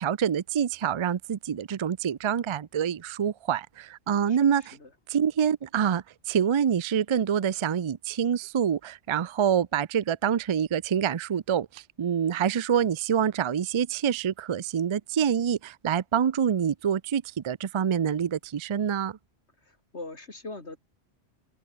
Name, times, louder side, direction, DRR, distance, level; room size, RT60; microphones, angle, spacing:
voice 1, 0.0-4.8 5.1-19.2, right 8 dB, 50° right, 0.3 m, -26 dB
voice 2, 4.3-4.9 19.6-20.8, left 2 dB, 70° left, 4.1 m, -42 dB
omnidirectional pair, 1.2 m